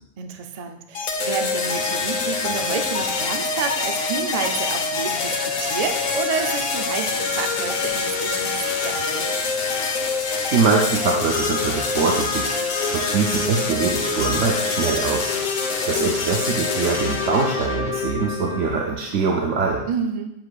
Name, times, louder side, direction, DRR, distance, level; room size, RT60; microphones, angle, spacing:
voice 1, 0.2-9.4 19.9-20.4, right 6 dB, 45° right, 5 dB, 0.5 m, -29 dB
sound 1, 0.9-18.9, left 4 dB, 85° left, 1.3 m, -25 dB
voice 2, 10.5-12.5 12.9-15.3 15.9-19.8, right 4 dB, 65° right, 0 dB, 1.0 m, -23 dB
8.0 x 7.5 x 2.4 m, 0.86 s
omnidirectional pair, 1.4 m